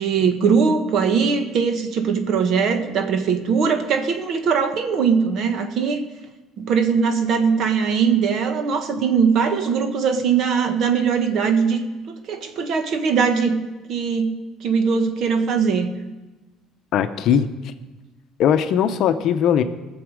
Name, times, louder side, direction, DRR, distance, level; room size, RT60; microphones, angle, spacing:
voice 1, 0.0-6.0 6.6-11.8 12.1-13.6 13.9-14.4 14.6-15.9, right 6 dB, 50° right, 8 dB, 1.3 m, -20 dB
voice 2, 16.9-17.7 18.4-19.6, left 9 dB, 55° left, 9 dB, 0.7 m, -19 dB
19.0 x 7.1 x 4.9 m, 1.2 s
cardioid pair, 145°, 0 cm